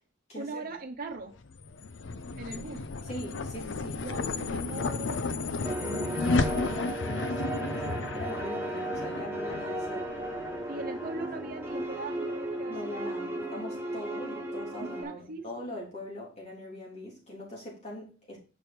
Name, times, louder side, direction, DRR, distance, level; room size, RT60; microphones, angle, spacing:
voice 1, 0.3-1.3 2.4-2.9 4.0-6.4 10.7-13.2 13.8-14.1 14.8-15.4, right 3 dB, 50° right, 1.1 m, -40 dB
sound 1, 1.3-11.9, left 3 dB, 75° left, 0.6 m, -34 dB
voice 2, 3.0-4.1 5.8-6.1 6.5-10.4 12.7-18.4, left 1 dB, 35° left, 3.7 m, -41 dB
sound 2, 5.6-15.0, right 1 dB, 10° right, 1.2 m, -35 dB
6.9 x 5.2 x 4.5 m
head